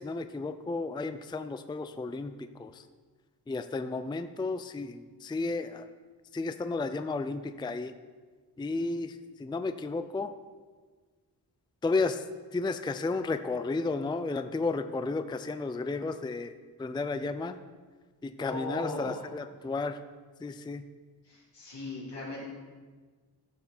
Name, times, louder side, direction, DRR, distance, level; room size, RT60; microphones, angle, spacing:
voice 1, 0.0-2.8 3.5-5.9 6.3-7.9 8.6-10.3 11.8-12.2 12.5-17.6 18.2-20.0 20.4-20.8, left 3 dB, 10° left, 10 dB, 0.4 m, -33 dB
voice 2, 18.4-19.2 21.2-22.5, left 2 dB, 85° left, -6 dB, 3.6 m, -38 dB
14.5 x 6.9 x 4.3 m, 1.4 s
wide cardioid pair, 110°, 40 cm